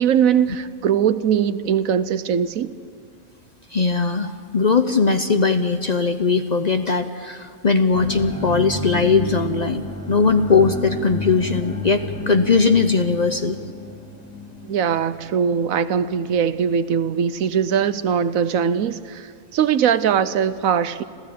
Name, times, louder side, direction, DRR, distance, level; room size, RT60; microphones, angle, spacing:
voice 1, 0.0-2.7 14.6-21.0, right 8 dB, 75° right, 14 dB, 1.2 m, -21 dB
voice 2, 3.7-13.6, left 4 dB, 40° left, 8 dB, 0.7 m, -19 dB
sound 1, 7.9-15.7, left 2 dB, 5° left, 2.3 m, -32 dB
26.5 x 15.5 x 8.6 m, 2.2 s
omnidirectional pair, 1.4 m